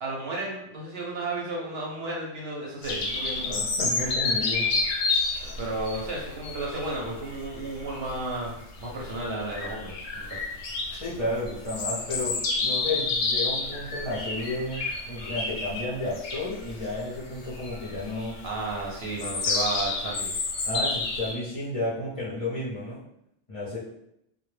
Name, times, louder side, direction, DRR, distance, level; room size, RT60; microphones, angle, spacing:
voice 1, 0.0-3.6 5.4-8.5 8.8-10.4 18.4-20.3, right 2 dB, 65° right, -2 dB, 0.7 m, -33 dB
sound 1, 2.8-21.3, left 3 dB, 85° left, 0.9 m, -30 dB
voice 2, 3.4-4.7 11.0-18.4 20.6-23.0 23.5-23.8, left 1 dB, 40° left, -9 dB, 0.5 m, -32 dB
2.1 x 2.1 x 3.1 m, 0.78 s
omnidirectional pair, 1.3 m